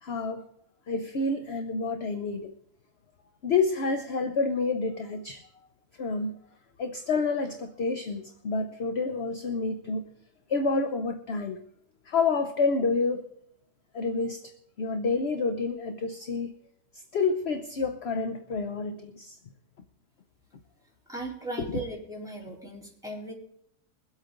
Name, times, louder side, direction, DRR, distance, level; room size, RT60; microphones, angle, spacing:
voice 1, 0.0-0.5 0.9-2.5 3.4-5.5 6.0-6.4 6.8-10.1 10.5-11.6 12.1-13.2 13.9-14.5 14.8-16.5 16.9-19.4 21.6-21.8, left 4 dB, 50° left, 7 dB, 1.0 m, -29 dB
voice 2, 21.1-23.3, right 2 dB, ahead, -4 dB, 3.9 m, -37 dB
22.5 x 8.2 x 3.8 m, 0.71 s
omnidirectional pair, 1.6 m